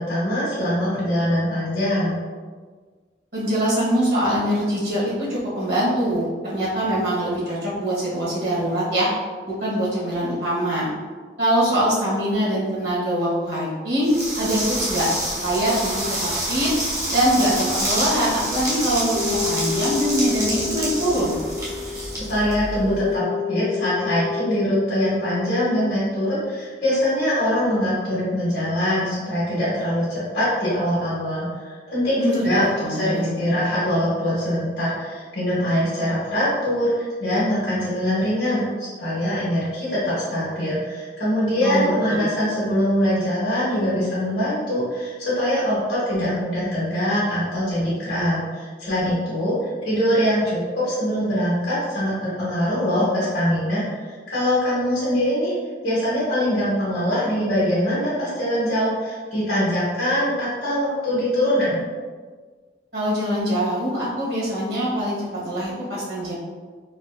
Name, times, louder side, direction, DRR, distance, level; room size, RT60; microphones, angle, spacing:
voice 1, 0.0-2.2 22.3-55.5 55.8-61.8, equal, 75° left, -11 dB, 1.4 m, -23 dB
voice 2, 3.3-9.1 9.5-10.9 11.4-15.1 15.4-16.7 17.1-21.4 32.2-32.5 32.8-33.3 41.6-41.9 62.9-66.3, equal, 65° right, -7 dB, 1.4 m, -23 dB
sound 1, 14.0-23.0, right 1 dB, 15° right, 0.8 m, -27 dB
sound 2, 19.1-26.4, left 8 dB, 40° left, 0.3 m, -30 dB
4.0 x 2.7 x 2.4 m, 1.5 s
head